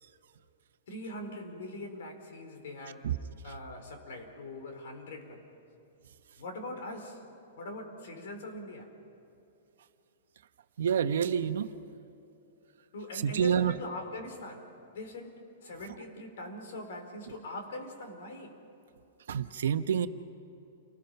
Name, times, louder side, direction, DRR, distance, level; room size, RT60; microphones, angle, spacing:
voice 1, 0.9-3.1 3.4-5.5 6.4-7.3 7.6-8.9 12.9-18.6, left 1 dB, 65° left, 5 dB, 4.3 m, -42 dB
voice 2, 10.8-11.7 13.1-13.7 19.3-20.1, right 8 dB, 75° right, 9 dB, 1.1 m, -28 dB
29.5 x 20.5 x 5.9 m, 2.9 s
hypercardioid pair, 170°, 0 cm